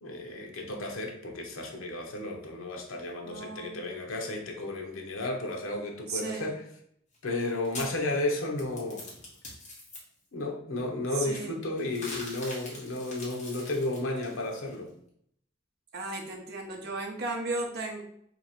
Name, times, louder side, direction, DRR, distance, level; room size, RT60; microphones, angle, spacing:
voice 1, 0.0-6.6 7.2-9.1 10.3-14.9, left 2 dB, 80° left, 2 dB, 0.8 m, -33 dB
voice 2, 3.2-3.8 6.1-6.5 11.2-11.5 15.9-18.0, right 2 dB, 50° right, 1 dB, 0.7 m, -35 dB
sound 1, 7.1-10.0 11.8-14.8, left 2 dB, 35° left, 1.1 m, -43 dB
2.9 x 2.8 x 4.2 m, 0.68 s
head